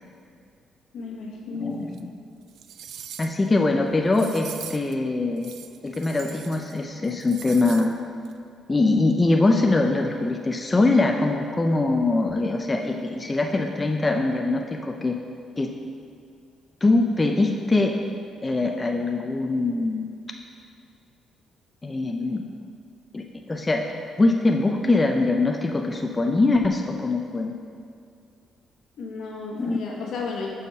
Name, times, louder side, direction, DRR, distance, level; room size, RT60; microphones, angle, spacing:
voice 1, 0.9-1.9 29.0-30.5, left 4 dB, 75° left, -1 dB, 1.3 m, -33 dB
voice 2, 1.6-2.0 3.2-5.5 5.8-7.9 8.7-15.2 15.6-15.7 16.8-18.0 18.4-20.1 21.8-22.4 23.1-23.9 24.2-27.5 29.6-29.8, left 2 dB, 20° left, 2 dB, 0.5 m, -22 dB
sound 1, 1.9-2.0 2.5-3.5 4.1-4.9 5.4-6.8 7.0-7.9 8.2-8.3, right 9 dB, 75° right, 0.3 m, -41 dB
6.8 x 4.9 x 5.3 m, 2.4 s
cardioid pair, 90°, 0 cm